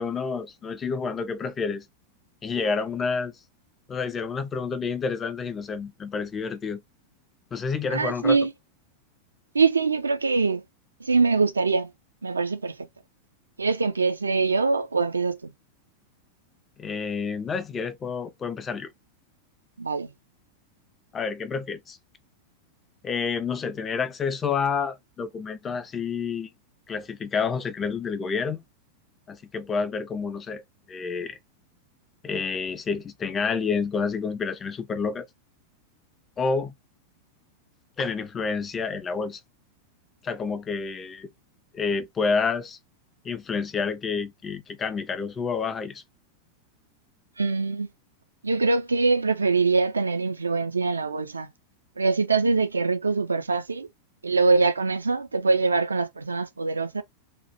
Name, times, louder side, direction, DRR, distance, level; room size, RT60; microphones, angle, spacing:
voice 1, 0.0-1.8 2.4-3.3 3.9-6.8 7.5-8.4 16.8-18.9 21.1-22.0 23.0-26.5 26.9-28.6 29.3-30.6 30.9-31.4 32.2-35.3 36.4-36.7 38.0-39.4 40.2-41.3 41.7-42.8 43.2-46.0, left 5 dB, 20° left, 0.4 m, -29 dB
voice 2, 7.9-8.5 9.5-10.6 11.0-11.9 12.2-12.7 13.6-15.5 19.8-20.1 47.4-47.9 48.4-51.5 52.0-53.9 54.2-57.0, right 4 dB, 75° right, 0.3 m, -23 dB
2.1 x 2.0 x 2.8 m
figure-of-eight pair, 90°, 0 cm